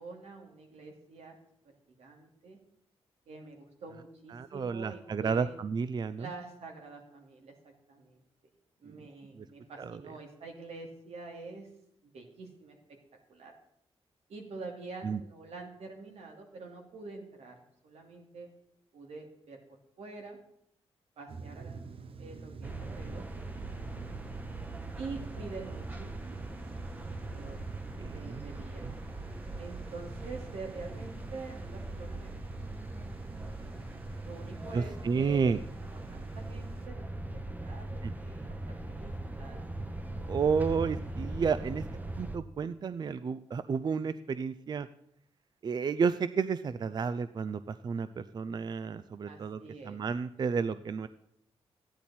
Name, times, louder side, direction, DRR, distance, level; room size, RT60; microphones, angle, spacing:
voice 1, 0.0-1.4 1.6-2.6 3.3-5.6 6.2-8.2 8.8-11.7 12.0-13.0 13.3-13.5 14.3-18.5 18.9-20.4 21.2-21.8 22.2-24.3 24.9-26.1 27.3-27.6 27.8-28.8 29.6-32.7 34.3-35.6 35.8-40.3 41.6-42.1 49.2-50.0, right 3 dB, 85° right, 2 dB, 2.5 m, -46 dB
voice 2, 4.3-6.3 8.9-9.1 9.4-9.5 9.8-10.0 15.0-15.2 28.0-28.4 28.8-28.9 34.7-35.6 38.0-38.1 40.3-41.8 42.2-44.9 45.6-51.1, right 5 dB, 45° right, 14 dB, 0.4 m, -31 dB
sound 1, 21.3-36.9, right 4 dB, 60° right, 0.8 m, -48 dB
sound 2, 22.6-42.4, right 2 dB, 15° right, 0.8 m, -40 dB
13.5 x 10.0 x 4.2 m, 0.75 s
wide cardioid pair, 110°, 11 cm